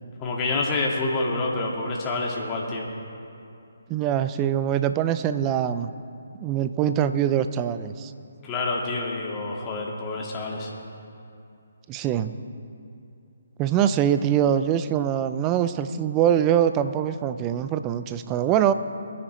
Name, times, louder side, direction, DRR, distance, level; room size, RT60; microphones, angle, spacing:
voice 1, 0.2-2.9 8.4-10.7, left 2 dB, 20° left, -3 dB, 2.0 m, -27 dB
voice 2, 3.9-5.9 6.4-8.1 11.9-12.3 13.6-18.7, right 10 dB, 20° right, 11 dB, 0.5 m, -23 dB
22.5 x 10.0 x 3.2 m, 2.6 s
figure-of-eight pair, 145°, 0 cm